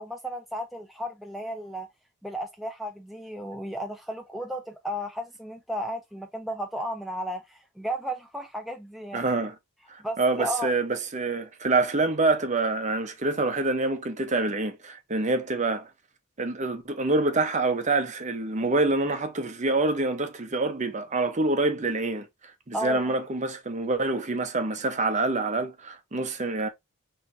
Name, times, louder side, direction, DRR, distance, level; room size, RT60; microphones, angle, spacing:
voice 1, 0.0-1.9 2.2-9.3 10.0-10.7 22.7-23.0, equal, ahead, 0.4 m, -34 dB
voice 2, 9.1-9.5 10.2-15.9 16.4-22.3 22.7-26.7, right 2 dB, 30° right, 0.8 m, -26 dB
5.9 x 3.3 x 2.7 m
head